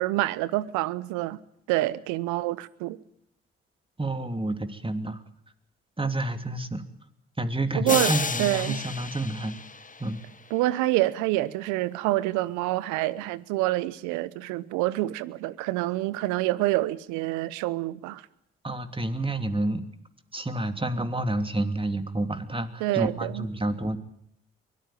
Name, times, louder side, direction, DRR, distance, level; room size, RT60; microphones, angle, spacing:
voice 1, 0.0-1.4 1.7-3.0 7.7-8.1 8.4-8.8 10.5-18.2 22.8-23.5, right 17 dB, 80° right, 0.9 m, -27 dB
voice 2, 4.0-5.2 6.0-6.8 7.4-9.6 10.0-10.2 18.6-19.8 20.3-24.0, right 2 dB, 20° right, 2.9 m, -29 dB
sound 1, 7.9-10.5, left 4 dB, 25° left, 1.5 m, -31 dB
23.5 x 18.0 x 9.2 m
hypercardioid pair, 45°, 29 cm